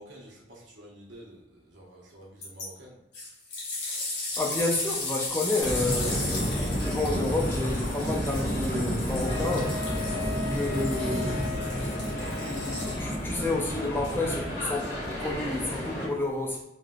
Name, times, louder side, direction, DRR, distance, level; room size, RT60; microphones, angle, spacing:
voice 1, 0.0-3.0, right 1 dB, 80° right, -4 dB, 1.0 m, -49 dB
sound 1, 2.4-2.7 3.1-13.3 14.1-14.2, left 2 dB, 70° left, 1.2 m, -36 dB
voice 2, 4.4-9.8 10.5-12.3 12.8-14.9 15.2-16.6, left 2 dB, 10° left, -1 dB, 0.4 m, -30 dB
sound 2, 5.6-16.1, equal, 40° left, 1.1 m, -31 dB
Wind instrument woodwind instrument, 9.3-13.1, left 4 dB, 50° right, 0.7 m, -38 dB
3.2 x 2.8 x 2.4 m, 0.91 s
head